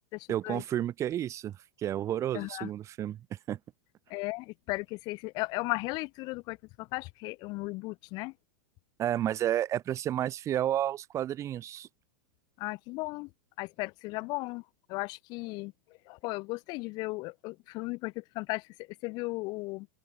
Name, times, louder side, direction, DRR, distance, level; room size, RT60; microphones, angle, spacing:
voice 1, 0.3-3.2 3.5-3.6 9.0-11.9, right 11 dB, 35° right, 2.3 m, -31 dB
voice 2, 2.3-2.7 4.1-8.3 12.6-13.3 13.6-14.6 14.9-15.7 16.1-19.9, left 24 dB, 50° left, 2.5 m, -36 dB
open air
hypercardioid pair, 110°, 9 cm